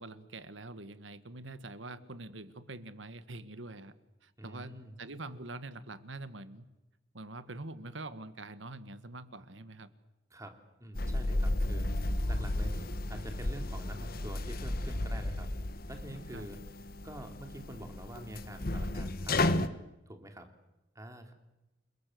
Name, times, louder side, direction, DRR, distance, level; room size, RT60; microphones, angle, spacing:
voice 1, 0.0-3.9 4.2-6.7 7.1-9.9 16.3-16.5, right 2 dB, 85° right, 12 dB, 1.7 m, -45 dB
voice 2, 4.4-4.9 10.3-10.5 10.8-15.5 15.9-16.6 17.0-19.7 20.1-20.5 20.9-21.3, right 1 dB, 15° right, 5 dB, 3.0 m, -46 dB
sound 1, 11.0-19.7, left 1 dB, 50° left, 1.2 m, -33 dB
29.5 x 20.5 x 7.9 m, 0.96 s
head